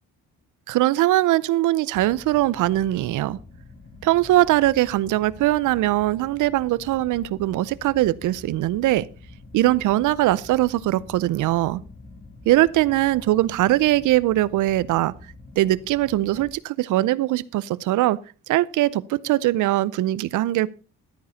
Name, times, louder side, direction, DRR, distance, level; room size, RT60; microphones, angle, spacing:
voice 1, 0.7-3.4 4.0-9.1 9.5-11.8 12.5-15.1 15.6-18.2 18.5-20.7, right 15 dB, 85° right, 0.7 m, -21 dB
sound 1, 1.9-16.5, left 2 dB, 35° left, 3.0 m, -46 dB
12.5 x 9.5 x 4.2 m
cardioid pair, 90°, 30 cm